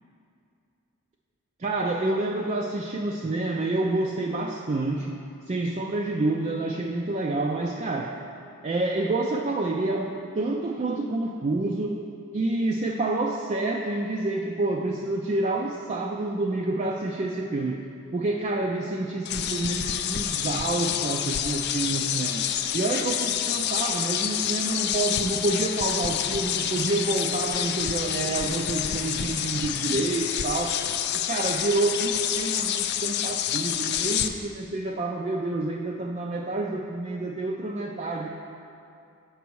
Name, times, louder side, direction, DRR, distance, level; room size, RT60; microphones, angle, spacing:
voice 1, 1.6-5.2 5.5-8.2 8.6-12.0 12.3-17.8 18.1-22.5 22.7-30.8 31.3-38.3, right 2 dB, 30° right, 0 dB, 0.3 m, -28 dB
sound 1, 19.2-34.3, left 10 dB, 50° left, 0.3 m, -28 dB
8.1 x 6.1 x 4.6 m, 2.5 s
head